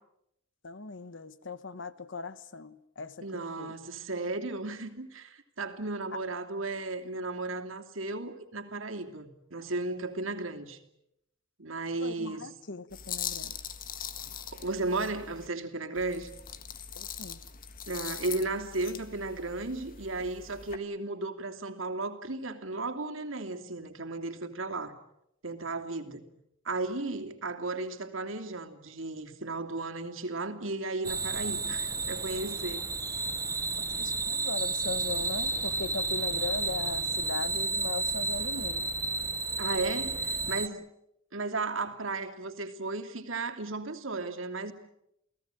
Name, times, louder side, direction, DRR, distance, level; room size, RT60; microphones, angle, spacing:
voice 1, 0.6-3.7 6.1-6.2 12.0-13.6 17.0-17.4 34.0-38.9 40.6-40.8, left 4 dB, 60° left, 1.3 m, -39 dB
voice 2, 3.2-10.8 11.6-12.5 14.5-16.3 17.9-25.0 25.4-26.3 26.6-32.9 39.6-40.9 41.3-44.7, right 3 dB, 70° right, 2.9 m, -35 dB
sound 1, 12.9-15.5 16.0-20.8, left 8 dB, 45° left, 1.6 m, -41 dB
sound 2, 31.0-40.7, right 3 dB, 15° right, 1.0 m, -32 dB
29.5 x 18.0 x 9.2 m
head